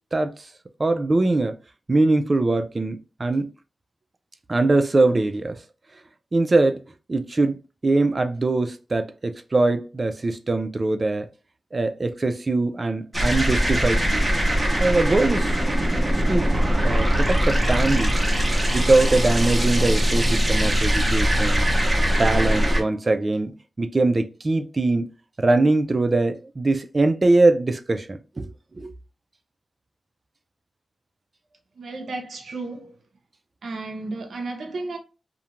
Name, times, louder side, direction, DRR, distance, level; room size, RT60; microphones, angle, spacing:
voice 1, 0.1-0.5 0.8-1.5 1.9-3.5 4.5-5.6 6.3-6.8 7.1-11.3 11.7-14.3 14.8-15.6 16.3-16.5 16.8-18.1 18.7-21.7 22.2-23.5 23.8-25.1 25.4-28.5 28.7-28.9, right 2 dB, 35° right, 0.3 m, -22 dB
sound 1, 13.1-22.8, equal, 20° right, 0.8 m, -21 dB
voice 2, 31.7-33.0 33.6-35.0, right 3 dB, 75° right, 0.7 m, -33 dB
2.4 x 2.1 x 2.9 m
cardioid pair, 70°, 0 cm